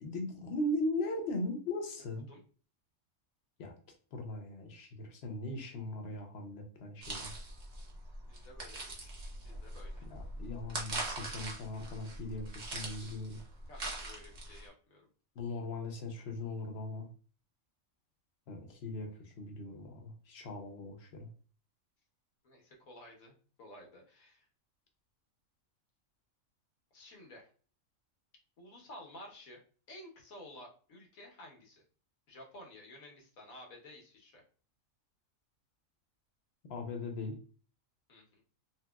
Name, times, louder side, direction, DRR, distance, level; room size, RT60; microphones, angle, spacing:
voice 1, 0.0-2.3 3.6-3.7 4.1-7.3 10.1-13.4 15.4-17.1 18.5-21.3 36.7-37.3, left 2 dB, 60° left, 3 dB, 0.8 m, -39 dB
sound 1, 7.0-14.7, right 2 dB, 45° right, 0.7 m, -42 dB
voice 2, 8.2-9.1 9.4-10.1 13.7-15.1 22.4-24.5 26.9-27.4 28.6-29.6 29.9-31.8 32.3-34.4 38.1-38.4, left 1 dB, 85° left, 0 dB, 1.3 m, -53 dB
2.9 x 2.8 x 2.2 m, 0.40 s
omnidirectional pair, 1.4 m